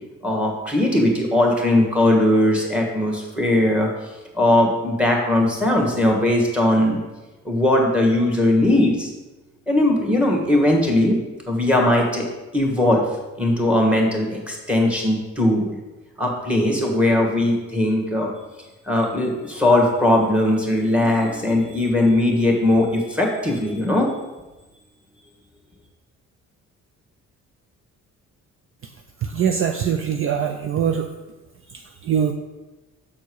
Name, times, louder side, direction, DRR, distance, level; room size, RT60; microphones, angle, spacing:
voice 1, 0.2-3.9 4.3-7.0 7.5-9.1 9.7-11.2 11.5-12.2 12.5-13.0 13.4-15.8 16.2-18.3 18.9-24.1, left 1 dB, 5° right, 0 dB, 1.9 m, -19 dB
voice 2, 29.2-31.1 31.7-32.3, right 8 dB, 45° right, 6 dB, 0.5 m, -23 dB
7.1 x 4.4 x 4.8 m, 1.1 s
cardioid pair, 90°, 30 cm